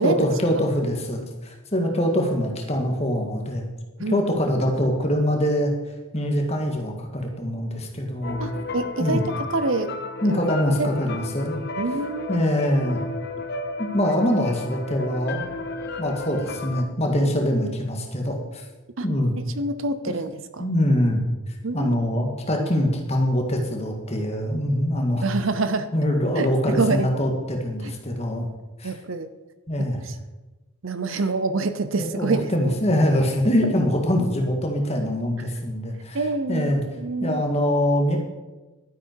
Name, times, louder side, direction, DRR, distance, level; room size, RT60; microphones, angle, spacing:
voice 1, 0.0-3.7 4.1-5.7 6.1-8.4 9.0-9.2 10.2-11.7 12.3-13.0 13.9-15.5 16.0-18.6 19.0-19.3 20.1-20.2 20.6-21.2 21.7-25.2 25.9-28.5 28.8-28.9 29.7-30.0 31.9-36.2 36.5-36.8 37.2-38.2, equal, 30° left, 2 dB, 1.8 m, -23 dB
sound 1, 8.2-16.8, left 3 dB, 50° left, 0.9 m, -33 dB
voice 2, 8.4-10.0 10.2-10.4 10.8-10.9 11.8-12.5 19.0-19.1 19.6-20.7 21.6-22.0 22.6-22.7 25.2-25.9 26.4-27.1 27.8-27.9 28.8-29.3 29.8-30.1 30.8-32.7 36.1-36.7 37.0-37.4, right 3 dB, 65° right, 11 dB, 0.7 m, -26 dB
12.0 x 10.0 x 4.7 m, 1.1 s
head